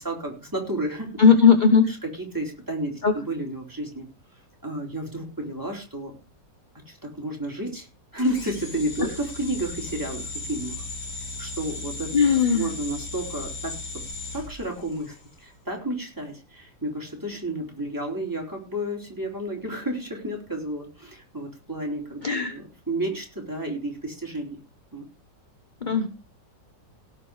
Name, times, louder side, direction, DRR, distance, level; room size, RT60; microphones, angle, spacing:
voice 1, 0.0-1.1 1.9-4.1 4.6-6.1 6.9-7.9 8.1-10.9 11.4-12.1 12.5-13.8 14.3-24.6 24.9-25.0, right 1 dB, 10° right, 0 dB, 3.9 m, -31 dB
voice 2, 1.2-1.9 3.0-3.1 12.1-12.7 22.2-22.5 25.8-26.1, left 6 dB, 30° left, 8 dB, 1.0 m, -17 dB
sound 1, 8.2-15.3, left 3 dB, 75° left, 3.1 m, -36 dB
17.0 x 6.4 x 4.9 m, 0.31 s
omnidirectional pair, 1.9 m